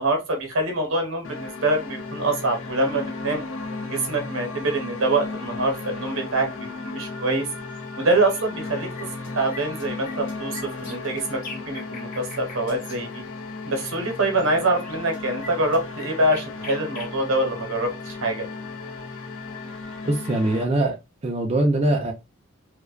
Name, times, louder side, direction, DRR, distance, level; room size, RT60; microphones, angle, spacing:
voice 1, 0.0-3.4 3.9-7.5 8.0-8.9 9.4-13.2 13.6-18.4, right 2 dB, 80° right, 0.9 m, -25 dB
sound 1, 1.2-20.6, left 3 dB, 75° left, 0.5 m, -35 dB
sound 2, 7.7-7.8 8.2-8.7 8.9-13.0 14.4-14.5 14.7-17.1, left 3 dB, 45° left, 0.8 m, -41 dB
voice 2, 20.0-21.0 21.2-22.1, right 2 dB, 30° right, 0.4 m, -22 dB
2.5 x 2.1 x 2.3 m
head